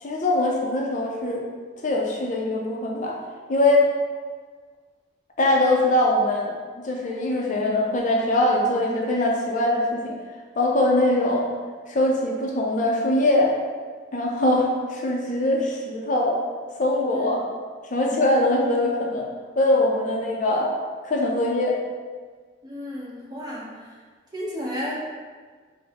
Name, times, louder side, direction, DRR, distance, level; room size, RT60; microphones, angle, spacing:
voice 1, 0.0-1.4 1.8-3.2 3.5-3.9 5.4-6.5 6.8-10.1 10.6-11.5 11.9-13.5 14.1-16.4 16.8-17.4 17.9-19.3 19.6-20.7 21.0-21.8, left 1 dB, 40° left, -1 dB, 0.4 m, -22 dB
voice 2, 22.6-24.0 24.3-25.0, equal, 20° right, -5 dB, 0.7 m, -33 dB
5.1 x 2.0 x 3.5 m, 1.5 s
head